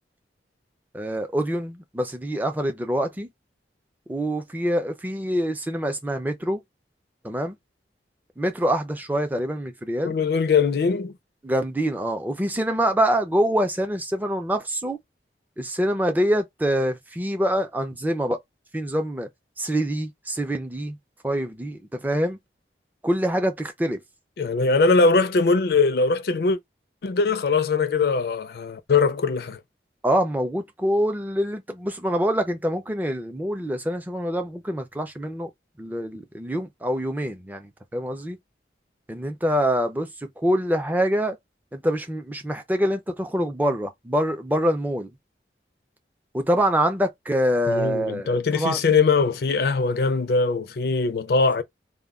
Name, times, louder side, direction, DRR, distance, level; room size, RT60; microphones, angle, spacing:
voice 1, 0.9-3.3 4.1-6.6 7.2-7.6 8.4-10.2 11.4-15.0 15.6-18.4 18.7-19.3 19.6-21.0 21.2-22.4 23.0-24.0 30.0-35.5 35.8-38.4 39.1-41.4 41.7-45.1 46.3-48.8, equal, 10° right, 0.4 m, -25 dB
voice 2, 10.0-11.1 24.4-26.6 27.0-29.6 47.7-51.6, left 4 dB, 60° left, 0.4 m, -21 dB
2.2 x 2.1 x 3.6 m
head